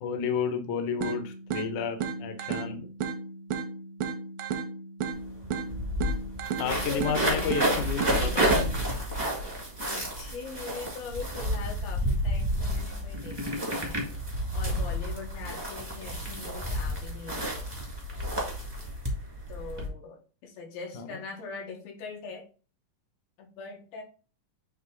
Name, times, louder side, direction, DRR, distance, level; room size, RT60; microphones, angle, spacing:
voice 1, 0.0-2.9 6.6-8.7 20.9-21.1, left 6 dB, 70° left, 6 dB, 2.0 m, -31 dB
sound 1, 1.0-9.0, right 6 dB, 85° right, 2.5 m, -35 dB
sound 2, 5.1-5.2 5.4-19.9, equal, 25° right, 0.5 m, -30 dB
voice 2, 6.6-7.6 9.9-14.1 14.5-17.7 19.5-22.4 23.4-24.0, left 4 dB, 85° left, 1 dB, 3.2 m, -41 dB
8.3 x 2.9 x 3.8 m, 0.36 s
omnidirectional pair, 4.1 m